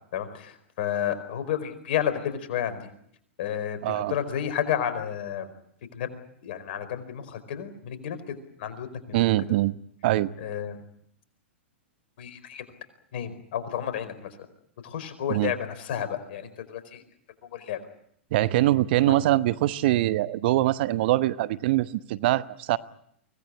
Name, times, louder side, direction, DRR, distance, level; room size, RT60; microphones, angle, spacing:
voice 1, 0.1-2.9 3.4-5.5 5.9-6.1 6.4-9.2 10.4-10.8 12.2-12.6 13.1-14.3 14.8-17.0 17.4-17.8 19.0-19.2, left 9 dB, 55° left, 11 dB, 4.7 m, -31 dB
voice 2, 3.8-4.1 9.1-9.7 10.0-10.3 15.3-15.5 18.3-22.8, right 15 dB, 55° right, 15 dB, 1.0 m, -23 dB
24.5 x 18.5 x 9.9 m, 0.70 s
hypercardioid pair, 105°, 7 cm